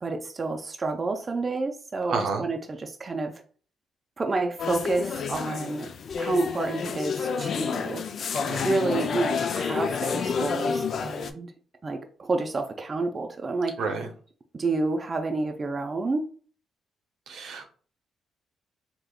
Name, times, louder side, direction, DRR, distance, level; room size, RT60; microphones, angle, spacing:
voice 1, 0.0-3.4 4.2-5.9 6.2-8.0 8.6-11.5 11.8-13.7 14.5-16.3, right 3 dB, 35° right, 4 dB, 0.4 m, -29 dB
voice 2, 2.1-2.4 8.4-8.7 13.8-14.1 17.3-17.6, right 4 dB, 75° right, 4 dB, 0.7 m, -30 dB
sound 1, 4.6-11.3, left 6 dB, 60° left, 0.3 m, -29 dB
3.5 x 2.9 x 2.2 m, 0.42 s
cardioid pair, 75°, 0 cm